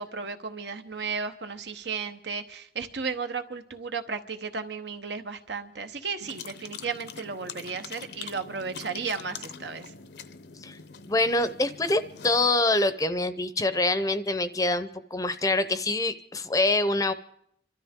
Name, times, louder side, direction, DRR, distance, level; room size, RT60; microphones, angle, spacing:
voice 1, 0.0-9.9, right 5 dB, 75° right, 8 dB, 1.1 m, -34 dB
sound 1, 6.2-12.5, left 6 dB, 70° left, 0.7 m, -44 dB
voice 2, 11.1-17.1, left 2 dB, 20° left, 12 dB, 0.6 m, -25 dB
27.0 x 13.0 x 3.6 m, 0.71 s
head